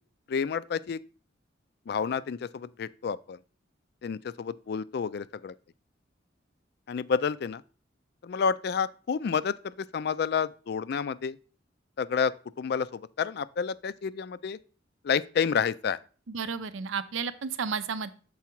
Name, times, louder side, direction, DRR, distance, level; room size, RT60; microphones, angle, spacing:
voice 1, 0.3-1.0 1.9-3.4 4.0-5.5 6.9-7.6 8.2-11.4 12.0-14.6 15.0-16.0, left 6 dB, 55° left, 0.3 m, -30 dB
voice 2, 16.3-18.1, right 6 dB, 90° right, 0.5 m, -32 dB
7.0 x 4.7 x 4.5 m
head